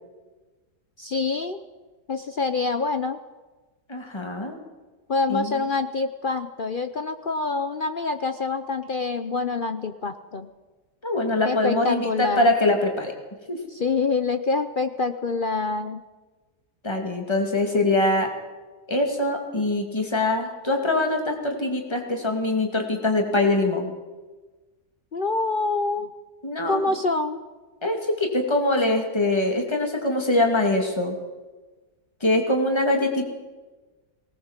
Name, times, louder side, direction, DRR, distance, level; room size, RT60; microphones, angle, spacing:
voice 1, 1.0-1.6 2.1-3.2 5.1-10.5 11.4-12.5 13.7-16.0 25.1-26.1 26.7-27.4, left 3 dB, 50° left, 8 dB, 0.6 m, -26 dB
voice 2, 3.9-4.6 5.3-5.6 11.0-13.1 13.5-13.6 16.8-18.3 18.9-23.9 26.4-26.8 27.8-31.2 32.2-33.3, left 2 dB, 15° left, 3 dB, 2.5 m, -23 dB
19.0 x 18.5 x 7.4 m, 1.3 s
omnidirectional pair, 1.7 m